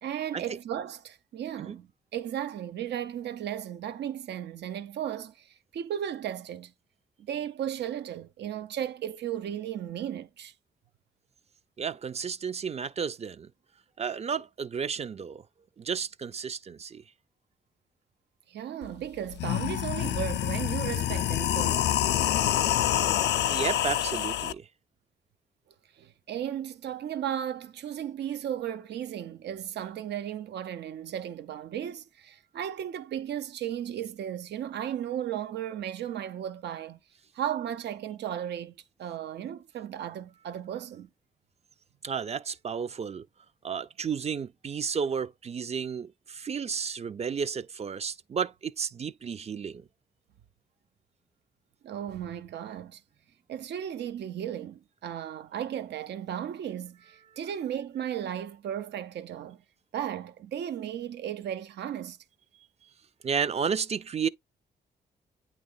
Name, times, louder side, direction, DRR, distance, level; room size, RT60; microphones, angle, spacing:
voice 1, 0.0-6.7 7.2-10.5 18.5-21.9 26.0-37.0 37.3-41.1 51.8-53.0 53.5-59.6 59.9-62.2, right 10 dB, 85° right, 0.6 m, -35 dB
voice 2, 11.8-13.5 14.0-15.4 15.8-17.0 23.5-24.7 42.0-43.2 43.6-49.8 63.2-64.3, right 6 dB, 40° right, 0.4 m, -32 dB
sound 1, 18.8-18.9 19.3-24.5, left 12 dB, 85° left, 0.4 m, -27 dB
8.6 x 2.9 x 3.8 m
cardioid pair, 70°, 17 cm